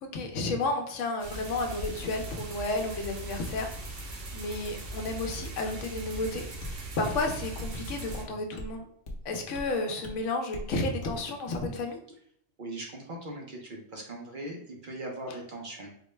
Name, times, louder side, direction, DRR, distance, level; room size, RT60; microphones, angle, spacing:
voice 1, 0.0-3.7 4.0-4.1 4.3-8.9 9.2-12.0, left 2 dB, 80° left, 4 dB, 1.0 m, -32 dB
sound 1, 1.2-8.2, right 2 dB, 90° right, 1.1 m, -39 dB
sound 2, 6.6-6.8 7.1-7.3 7.6-7.8 8.1-8.2 8.6-8.7 9.1-9.2 9.5-9.7 10.0-10.2 10.5-10.7 11.0-11.2 11.5-11.7, left 1 dB, 55° left, 0.9 m, -39 dB
voice 2, 12.6-15.9, right 1 dB, 50° right, 0 dB, 0.7 m, -40 dB
4.2 x 2.1 x 3.1 m, 0.67 s
omnidirectional pair, 1.2 m